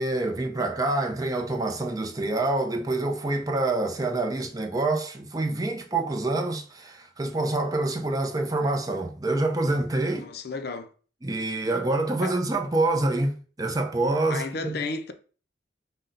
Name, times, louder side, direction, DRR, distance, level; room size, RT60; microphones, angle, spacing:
voice 1, 0.0-10.3 11.2-14.8, right 2 dB, 20° right, 0.5 m, -26 dB
voice 2, 10.1-10.9 12.2-12.4 14.3-15.1, left 3 dB, 55° left, 0.5 m, -33 dB
5.3 x 2.2 x 3.8 m
head